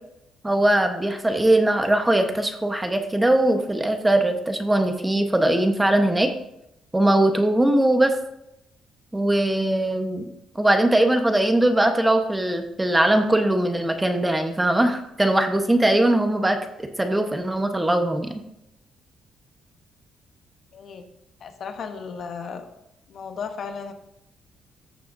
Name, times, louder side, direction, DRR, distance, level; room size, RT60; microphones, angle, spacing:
voice 1, 0.4-6.3 6.9-8.1 9.1-10.2 10.5-18.3, right 1 dB, 15° right, 6 dB, 1.1 m, -20 dB
voice 2, 20.7-21.1 21.4-22.7 23.1-23.9, left 5 dB, 60° left, 7 dB, 1.0 m, -35 dB
14.5 x 6.8 x 2.7 m, 0.83 s
cardioid pair, 90°, 0 cm